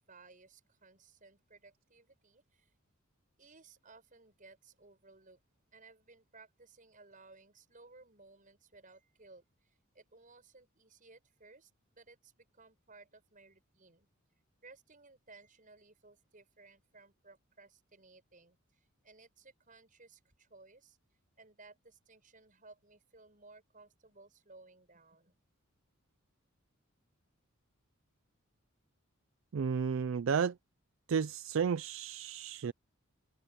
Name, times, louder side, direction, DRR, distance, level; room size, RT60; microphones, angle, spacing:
voice 1, 0.0-2.7 3.4-5.4 5.7-14.1 14.6-21.0 21.4-25.4, right 3 dB, 40° right, 6.5 m, -59 dB
voice 2, 29.5-30.5 31.1-32.7, right 6 dB, 65° right, 0.4 m, -32 dB
head